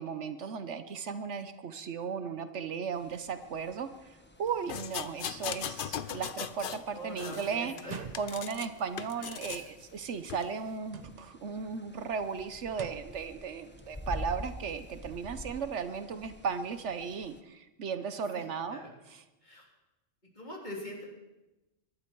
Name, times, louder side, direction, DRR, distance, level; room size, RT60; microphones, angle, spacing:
voice 1, 0.0-7.7 8.1-18.8, right 6 dB, 70° right, 10 dB, 1.1 m, -36 dB
sound 1, 2.9-17.4, left 1 dB, 10° left, 0.9 m, -48 dB
sound 2, 4.7-6.9 7.2-8.7 9.0-9.7 10.3-10.5, left 9 dB, 55° left, 0.7 m, -38 dB
voice 2, 6.9-8.0 9.2-9.6 18.3-18.4 18.7-18.8 19.4-19.6 20.4-21.1, equal, 35° left, -2 dB, 3.7 m, -43 dB
sound 3, 7.8-8.6 10.8-11.5 12.7-13.2, right 5 dB, 40° right, 0.7 m, -44 dB
22.5 x 11.5 x 4.6 m, 1.0 s
omnidirectional pair, 1.3 m